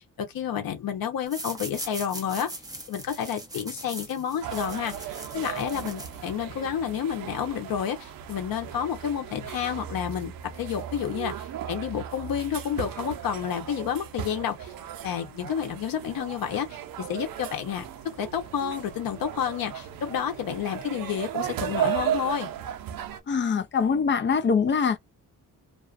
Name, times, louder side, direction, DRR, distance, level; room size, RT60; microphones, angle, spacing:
voice 1, 0.0-2.5 2.9-4.9 5.3-14.7 15.0-17.8 18.2-22.5, left 8 dB, 90° left, 0.9 m, -30 dB
sound 1, 1.3-6.6, right 1 dB, 10° right, 0.7 m, -40 dB
sound 2, 4.4-23.2, right 10 dB, 80° right, 0.5 m, -36 dB
voice 2, 23.3-25.0, left 5 dB, 35° left, 0.4 m, -23 dB
2.4 x 2.2 x 2.4 m
wide cardioid pair, 135°, 34 cm